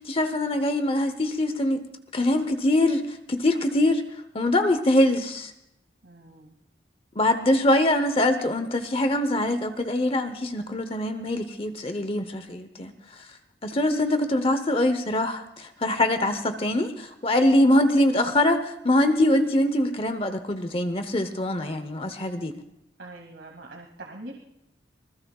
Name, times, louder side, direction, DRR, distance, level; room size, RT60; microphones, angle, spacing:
voice 1, 0.0-1.8 2.1-4.0 4.3-5.5 7.2-12.9 13.6-22.6, left 1 dB, 30° left, 8 dB, 0.9 m, -23 dB
voice 2, 6.0-6.5 21.3-21.6 23.0-24.3, right 2 dB, 85° right, 1 dB, 2.2 m, -43 dB
26.0 x 20.5 x 2.4 m, 0.84 s
head